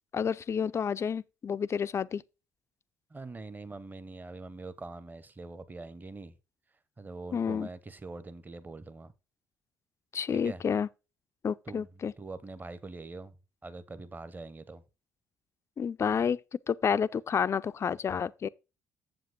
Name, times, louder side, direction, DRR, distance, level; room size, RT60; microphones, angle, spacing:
voice 1, 0.1-2.2 7.3-7.7 10.1-10.9 11.4-12.1 15.8-16.4 16.7-18.5, left 7 dB, 35° left, 0.4 m, -29 dB
voice 2, 3.1-6.4 7.0-9.1 10.3-10.6 11.7-11.9 12.2-13.3 13.6-14.8, right 3 dB, 20° right, 0.9 m, -43 dB
7.9 x 7.6 x 3.7 m
figure-of-eight pair, 50°, 9 cm